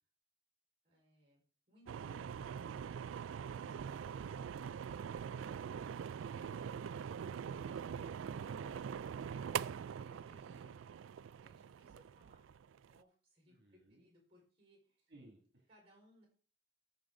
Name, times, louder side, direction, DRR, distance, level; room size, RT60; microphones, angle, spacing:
voice 1, 0.8-1.4 8.4-8.9 10.0-11.1 11.4-12.5 12.9-15.1 15.7-16.3, equal, 30° right, 0 dB, 4.8 m, -66 dB
sound 1, 1.9-13.0, right 7 dB, 90° right, 0.3 m, -43 dB
voice 2, 13.5-14.0 15.1-15.7, right 1 dB, 60° right, 0 dB, 2.4 m, -63 dB
14.0 x 5.4 x 3.9 m, 0.41 s
head